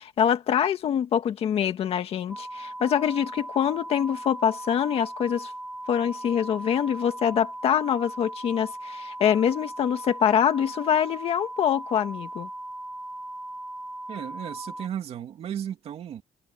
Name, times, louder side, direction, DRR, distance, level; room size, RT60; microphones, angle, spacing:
voice 1, 0.0-5.5 5.9-12.5, left 9 dB, 50° left, 1.7 m, -25 dB
sound 1, 2.3-14.9, right 1 dB, 5° right, 1.2 m, -38 dB
voice 2, 14.1-16.2, right 9 dB, 50° right, 2.8 m, -35 dB
cardioid pair, 160°, 13 cm